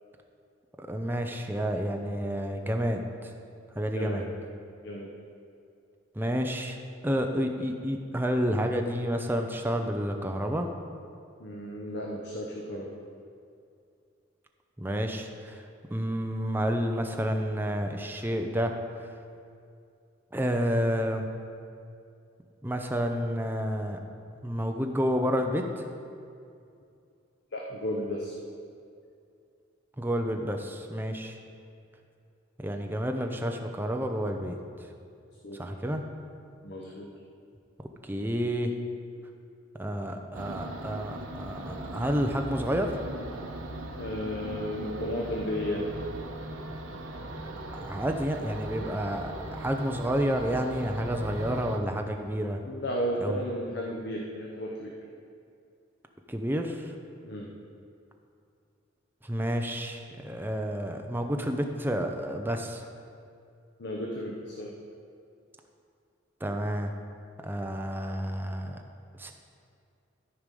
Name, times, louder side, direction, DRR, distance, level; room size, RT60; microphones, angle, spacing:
voice 1, 0.8-3.3 3.7-4.2 6.2-6.8 7.0-10.7 14.8-15.6 15.9-18.7 20.3-21.3 22.6-24.0 24.4-25.8 30.0-31.4 32.6-34.6 35.5-36.0 38.0-38.7 39.8-42.9 47.8-49.3 49.6-52.6 53.2-53.4 56.3-56.9 59.2-62.8 66.4-66.9 67.4-68.8 69.1-69.3, equal, 10° right, 4 dB, 0.6 m, -30 dB
voice 2, 11.4-12.9 27.5-28.3 35.4-35.6 36.6-37.1 44.0-45.9 52.7-54.9 57.2-57.5 63.8-64.7, equal, 55° left, -1 dB, 0.9 m, -33 dB
sound 1, 40.3-51.8, right 1 dB, 85° right, 1.0 m, -39 dB
13.0 x 4.9 x 5.3 m, 2.5 s
head